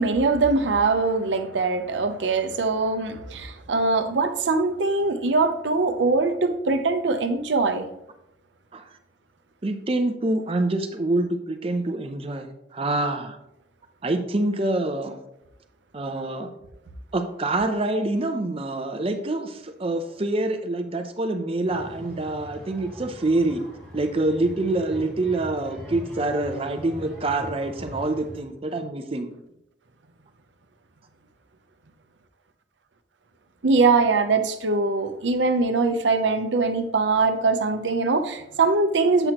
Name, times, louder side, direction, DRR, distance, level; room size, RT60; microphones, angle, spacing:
voice 1, 0.0-7.9 33.6-39.3, right 3 dB, 85° right, 7 dB, 0.7 m, -22 dB
voice 2, 9.6-13.4 14.0-15.2 15.9-16.5 17.1-23.6 23.9-29.3, right 2 dB, 35° right, 7 dB, 0.6 m, -26 dB
sound 1, 21.7-28.4, equal, 5° left, 2.3 m, -41 dB
7.9 x 6.0 x 2.9 m, 0.82 s
head